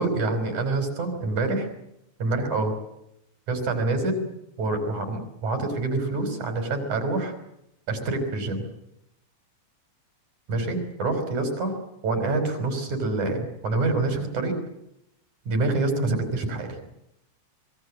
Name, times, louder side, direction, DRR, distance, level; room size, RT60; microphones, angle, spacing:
voice 1, 0.0-1.7 2.2-2.7 3.5-4.3 4.6-7.3 7.9-8.6 10.5-11.7 12.0-14.6 15.5-16.7, right 2 dB, 80° right, 6 dB, 6.4 m, -26 dB
26.0 x 22.0 x 7.6 m, 0.82 s
omnidirectional pair, 3.4 m